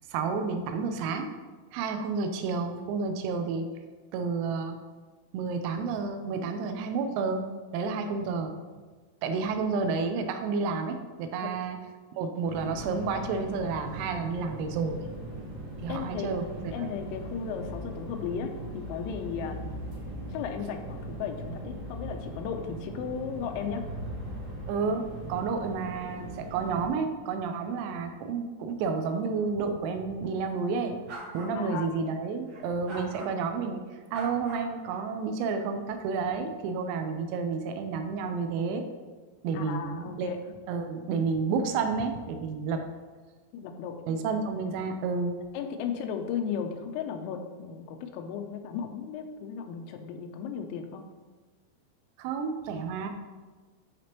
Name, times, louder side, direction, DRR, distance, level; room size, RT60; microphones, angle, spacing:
voice 1, 0.1-1.3 1.7-3.7 4.1-4.8 5.3-7.5 7.7-8.6 9.2-11.8 12.2-15.0 15.8-16.9 24.7-31.0 31.3-33.8 34.1-38.8 39.4-40.3 40.7-42.8 44.1-45.4 52.2-53.1, right 4 dB, 90° right, 6 dB, 3.5 m, -30 dB
sound 1, 12.5-26.9, right 1 dB, 40° right, 3.0 m, -39 dB
voice 2, 15.9-16.3 16.7-19.6 20.3-23.8 31.6-31.9 39.5-40.4 43.5-44.0 45.5-51.1, left 7 dB, 85° left, 5 dB, 3.3 m, -35 dB
sound 2, 31.1-31.5 32.5-33.3 34.1-35.0, right 1 dB, 60° right, 4.0 m, -42 dB
12.5 x 5.1 x 3.0 m, 1.4 s
omnidirectional pair, 6.0 m